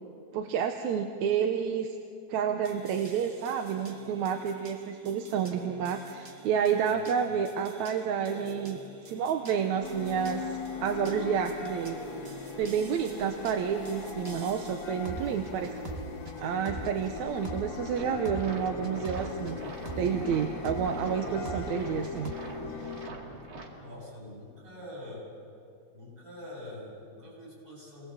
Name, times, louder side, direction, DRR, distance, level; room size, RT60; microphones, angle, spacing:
voice 1, 0.3-2.0 2.3-8.8 9.1-12.0 12.6-15.8 16.4-19.6 20.0-22.3 22.8-22.9, right 7 dB, 80° right, 5 dB, 2.3 m, -30 dB
sound 1, 2.6-20.3 20.6-22.3, right 3 dB, 40° right, 0.9 m, -45 dB
sound 2, 9.8-23.1, left 5 dB, 45° left, 2.1 m, -39 dB
sound 3, 17.9-23.7, right 2 dB, 55° right, 3.4 m, -43 dB
voice 2, 23.7-25.2 25.9-28.1, left 1 dB, 15° right, -5 dB, 8.2 m, -44 dB
28.0 x 19.5 x 7.6 m, 2.6 s
omnidirectional pair, 3.3 m